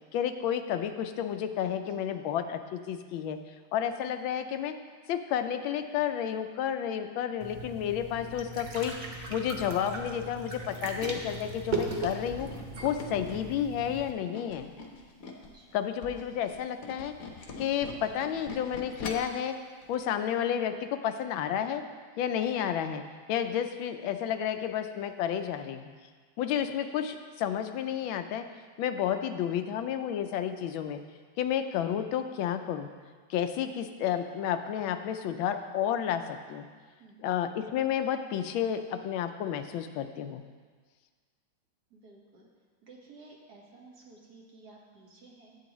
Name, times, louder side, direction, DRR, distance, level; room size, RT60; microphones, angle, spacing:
voice 1, 0.1-3.4 3.7-4.8 5.1-8.9 9.3-12.5 12.8-14.7 15.7-17.1 17.6-19.5 19.9-21.8 22.2-23.0 23.3-25.9 26.4-28.5 28.8-31.0 31.4-32.9 33.3-36.6 37.2-40.4, left 9 dB, 75° left, 9 dB, 1.3 m, -31 dB
voice 2, 6.9-7.3 15.4-15.8 37.0-37.3 41.9-42.5 42.8-45.6, right 3 dB, 55° right, -1 dB, 1.8 m, -54 dB
sound 1, 7.4-14.1, right 2 dB, 80° right, 0.4 m, -38 dB
Tools, 10.5-15.5 15.9-19.4 19.8-20.0 20.3-20.4, left 4 dB, 55° left, 1.1 m, -43 dB
12.0 x 8.4 x 3.0 m, 1.5 s
omnidirectional pair, 2.3 m